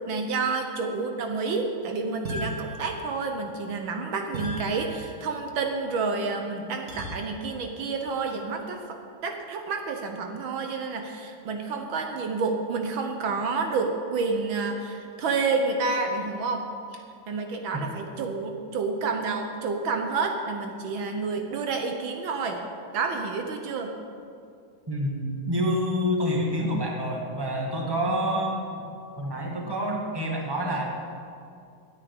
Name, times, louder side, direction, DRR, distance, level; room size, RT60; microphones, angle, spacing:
voice 1, 0.1-22.6 22.9-23.9, right 4 dB, 70° right, 4 dB, 1.7 m, -29 dB
sound 1, 2.2-3.5 4.3-5.5 6.9-7.7, equal, 50° right, 2.4 m, -37 dB
voice 2, 24.9-28.9 29.2-30.8, equal, 10° right, -1 dB, 1.7 m, -27 dB
9.9 x 8.7 x 9.4 m, 2.5 s
omnidirectional pair, 2.3 m